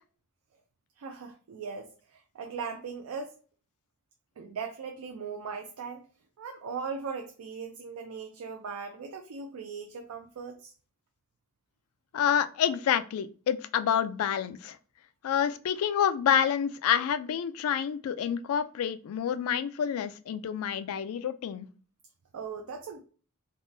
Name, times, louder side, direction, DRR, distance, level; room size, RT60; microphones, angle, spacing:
voice 1, 1.0-3.4 4.4-6.1 6.4-10.7 22.3-23.0, right 5 dB, 80° right, 4 dB, 0.4 m, -39 dB
voice 2, 12.1-14.8 15.2-21.7, left 8 dB, 70° left, 14 dB, 0.3 m, -28 dB
3.5 x 2.1 x 2.6 m, 0.39 s
head